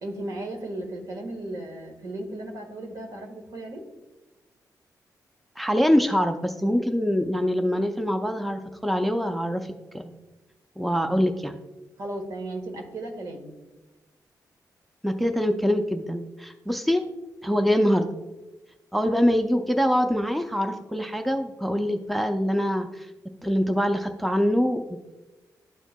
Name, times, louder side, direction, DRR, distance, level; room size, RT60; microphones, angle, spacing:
voice 1, 0.0-3.8 12.0-13.5, right 1 dB, 55° right, 3 dB, 1.4 m, -35 dB
voice 2, 5.6-10.1 10.8-11.6 15.0-17.0 17.4-18.1 18.9-23.1 23.4-25.0, equal, ahead, 6 dB, 0.4 m, -24 dB
12.0 x 4.5 x 2.2 m, 1.1 s
wide cardioid pair, 115°, 7 cm